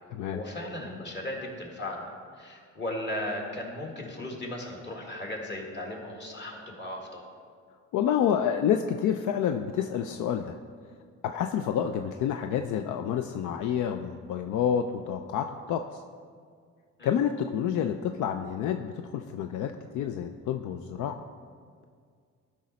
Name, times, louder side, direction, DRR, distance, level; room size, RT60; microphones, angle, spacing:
voice 1, 0.3-7.3 17.0-17.1, left 1 dB, 35° left, -1 dB, 2.0 m, -36 dB
voice 2, 7.9-10.6 11.2-16.0 17.0-21.2, left 8 dB, 80° left, 6 dB, 0.5 m, -28 dB
12.5 x 5.2 x 4.2 m, 2.1 s
cardioid pair, 90°, 30 cm